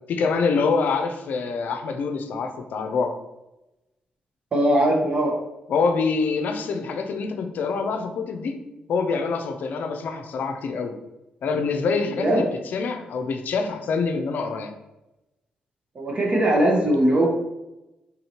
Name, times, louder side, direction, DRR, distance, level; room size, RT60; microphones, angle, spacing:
voice 1, 0.1-3.2 5.7-8.6 8.9-10.9 11.4-14.7, left 4 dB, 70° left, 6 dB, 0.5 m, -25 dB
voice 2, 4.5-5.3 12.2-12.4 16.0-17.3, right 1 dB, 45° right, -1 dB, 1.0 m, -20 dB
3.9 x 2.8 x 2.9 m, 0.97 s
supercardioid pair, 65°, 3 cm